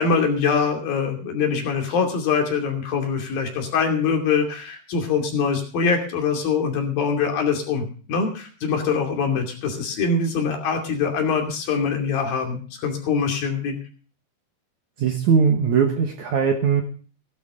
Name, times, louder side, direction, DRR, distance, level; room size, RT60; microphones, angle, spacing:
voice 1, 0.0-13.7, left 5 dB, 60° left, 2 dB, 4.3 m, -23 dB
voice 2, 15.0-16.8, right 6 dB, 60° right, 4 dB, 2.1 m, -20 dB
17.0 x 12.0 x 3.7 m, 0.40 s
omnidirectional pair, 4.8 m